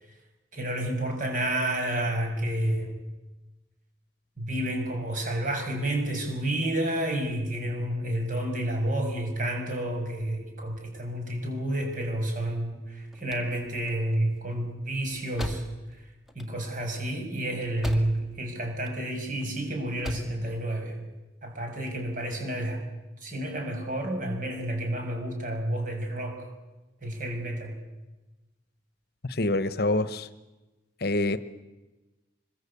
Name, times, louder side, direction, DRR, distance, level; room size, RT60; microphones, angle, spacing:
voice 1, 0.5-2.9 4.4-15.6 16.3-21.0 21.4-22.8 23.2-26.5 27.0-27.8, right 1 dB, 45° right, 3 dB, 6.3 m, -30 dB
sound 1, 12.8-18.5 18.7-19.5 19.8-20.4, left 1 dB, ahead, 2.0 m, -40 dB
voice 2, 29.2-30.3 31.0-31.4, left 2 dB, 55° left, 14 dB, 1.0 m, -26 dB
25.5 x 22.0 x 8.5 m, 1.1 s
head